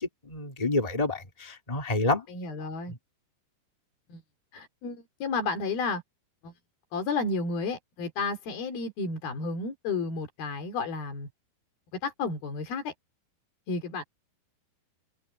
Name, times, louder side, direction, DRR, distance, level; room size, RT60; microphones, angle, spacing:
voice 1, 0.0-2.2, left 2 dB, 15° left, 1.4 m, -28 dB
voice 2, 2.3-2.9 4.1-4.2 4.5-6.0 6.4-6.5 6.9-11.3 12.0-12.9 13.7-14.0, left 4 dB, 65° left, 5.0 m, -32 dB
omnidirectional pair, 4.7 m